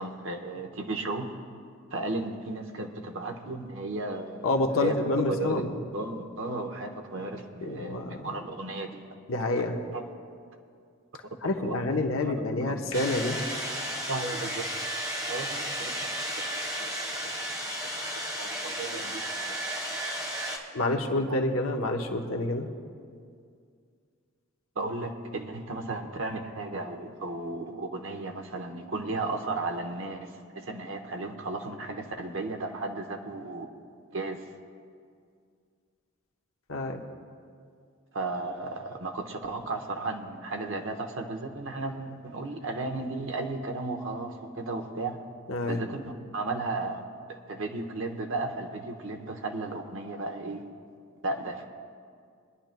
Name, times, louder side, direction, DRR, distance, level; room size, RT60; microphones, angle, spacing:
voice 1, 0.0-1.3 1.9-4.5 4.8-5.0 5.3-5.6 5.9-9.0 9.9-10.0 11.6-11.9 12.2-12.3 12.6-12.7 14.1-14.7 15.3-15.9 16.8-16.9 17.3-17.5 18.4-19.2 19.5-19.6 20.8-21.4 24.8-33.7 34.1-34.4 38.1-45.2 45.7-47.0 47.5-50.7 51.2-51.6, right 2 dB, 65° right, 3 dB, 1.0 m, -34 dB
voice 2, 4.4-5.7 7.6-8.3 9.3-9.8 11.4-13.4 20.7-22.7 36.7-37.0 45.5-45.8, left 2 dB, 75° left, 2 dB, 0.9 m, -28 dB
sound 1, 12.9-20.6, equal, 20° right, 1.4 m, -33 dB
25.5 x 10.5 x 2.2 m, 2.2 s
head